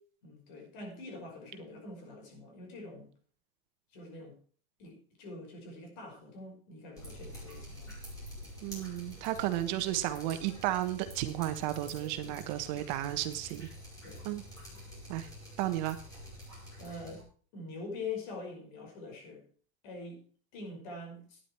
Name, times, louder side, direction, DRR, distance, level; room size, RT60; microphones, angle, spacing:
voice 1, 0.2-3.1 3.9-4.3 4.8-7.9 12.2-12.9 14.0-14.3 14.7-14.8 16.8-17.2 17.5-19.4 19.8-20.2 20.5-21.4, left 3 dB, 55° left, 3 dB, 5.7 m, -44 dB
Drip, 7.0-17.2, equal, 10° left, 5.4 m, -47 dB
voice 2, 8.6-13.7 14.2-14.4 15.1-15.3 15.6-16.0, right 14 dB, 50° right, 9 dB, 1.3 m, -33 dB
12.0 x 10.0 x 4.6 m, 0.44 s
supercardioid pair, 170°, 29 cm